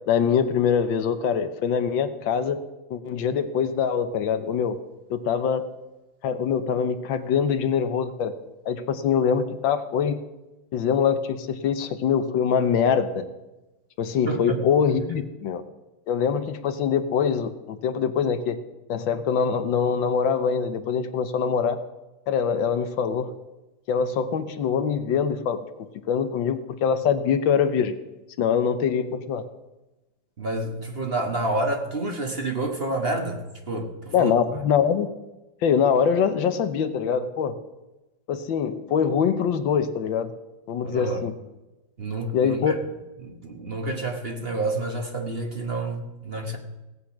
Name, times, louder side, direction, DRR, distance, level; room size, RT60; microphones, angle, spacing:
voice 1, 0.1-2.6 2.9-4.8 5.1-5.7 6.2-8.3 8.6-10.2 10.7-13.2 14.0-15.6 16.1-18.6 18.9-21.8 22.3-23.3 23.9-25.6 26.1-28.0 28.4-29.4 34.1-35.1 35.6-37.6 38.3-40.3 40.7-41.3 42.3-42.8, left 7 dB, 80° left, 1.6 m, -23 dB
voice 2, 14.2-14.6 30.4-34.4 40.8-41.3 42.0-42.8 43.2-46.6, right 2 dB, 35° right, 1.3 m, -29 dB
17.5 x 8.2 x 5.9 m
omnidirectional pair, 2.1 m